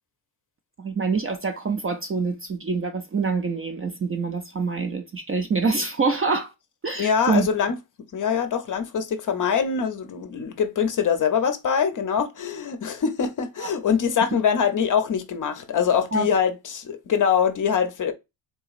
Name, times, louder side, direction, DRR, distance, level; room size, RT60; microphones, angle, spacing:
voice 1, 0.8-6.5 6.8-7.5 13.6-13.7 16.1-16.4, right 4 dB, 30° right, 0.4 m, -25 dB
voice 2, 7.0-7.8 8.1-18.1, left 7 dB, 40° left, 0.6 m, -23 dB
3.9 x 2.9 x 2.3 m
cardioid pair, 125°, 50 cm